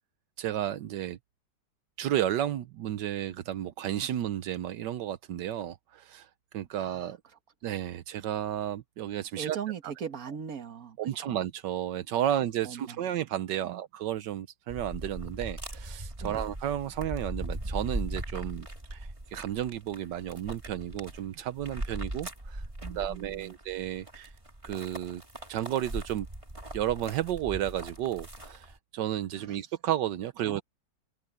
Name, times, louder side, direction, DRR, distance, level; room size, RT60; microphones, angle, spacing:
voice 1, 0.4-1.2 2.0-7.2 7.6-9.6 11.0-22.6 22.9-24.3 24.6-25.2 25.5-26.3 26.7-30.6, right 11 dB, 85° right, 1.4 m, -32 dB
voice 2, 6.7-7.1 9.4-11.4 12.6-13.0 13.7-13.8 16.2-16.5 22.8-23.5 29.3-29.6 30.4-30.6, right 8 dB, 55° right, 1.9 m, -40 dB
sound 1, 14.7-28.8, right 1 dB, 15° right, 2.7 m, -39 dB
omnidirectional pair, 1.9 m